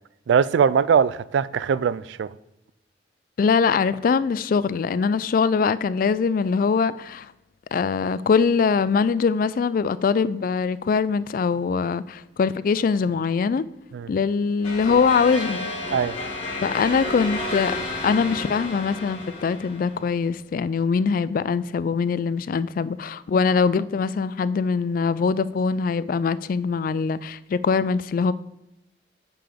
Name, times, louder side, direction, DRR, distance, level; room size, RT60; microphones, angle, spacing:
voice 1, 0.3-2.3 13.9-14.1 15.9-16.2, right 7 dB, 75° right, 0.3 m, -21 dB
voice 2, 3.4-7.3 7.7-13.6 14.1-15.7 16.6-17.7 18.0-28.3, left 5 dB, 50° left, 0.3 m, -22 dB
sound 1, 14.6-20.1, left 2 dB, 30° left, 2.4 m, -31 dB
9.0 x 6.8 x 3.6 m
head